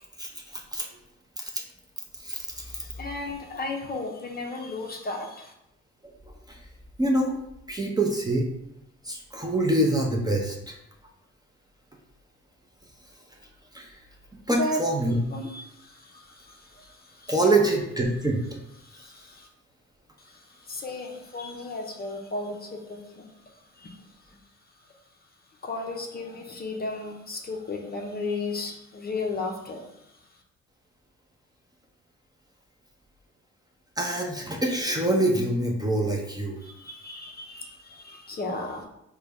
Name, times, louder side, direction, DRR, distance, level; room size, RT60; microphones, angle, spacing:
voice 1, 2.2-2.6 7.0-7.3 7.7-8.4 9.1-10.7 13.7-13.9 14.5-15.1 17.3-18.4 34.0-36.6, right 1 dB, 15° right, -1 dB, 0.6 m, -25 dB
voice 2, 2.8-5.5 14.6-14.8 15.3-17.6 18.8-19.5 20.2-23.3 23.8-24.0 25.6-29.9 36.6-38.8, left 2 dB, 30° left, 1 dB, 0.6 m, -35 dB
3.7 x 2.2 x 3.5 m, 0.80 s
cardioid pair, 90°, 30 cm